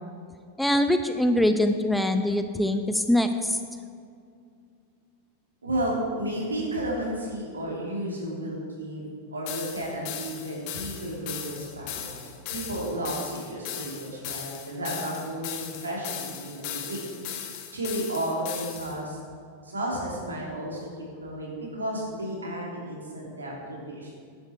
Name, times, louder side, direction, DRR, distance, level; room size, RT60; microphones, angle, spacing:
voice 1, 0.6-3.6, left 1 dB, 5° left, 8 dB, 0.6 m, -23 dB
voice 2, 5.6-9.0 9.3-17.0 17.7-19.2 19.6-20.9 21.2-24.1, right 1 dB, 75° right, -3 dB, 3.3 m, -32 dB
sound 1, 9.5-19.0, left 9 dB, 45° left, 1.2 m, -38 dB
11.0 x 10.0 x 4.6 m, 2.3 s
figure-of-eight pair, 90°, 0 cm